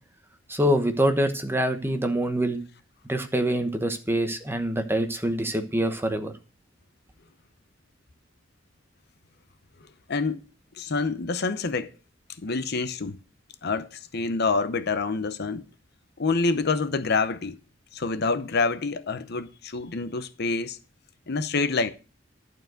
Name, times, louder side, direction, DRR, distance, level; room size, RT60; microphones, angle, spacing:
voice 1, 0.5-2.6 3.1-6.3, right 1 dB, 10° right, 1.1 m, -25 dB
voice 2, 10.1-10.4 10.8-11.9 12.4-13.2 13.6-15.6 16.2-17.6 17.9-20.8 21.3-21.9, left 4 dB, 60° left, 0.8 m, -27 dB
11.5 x 4.7 x 7.8 m
head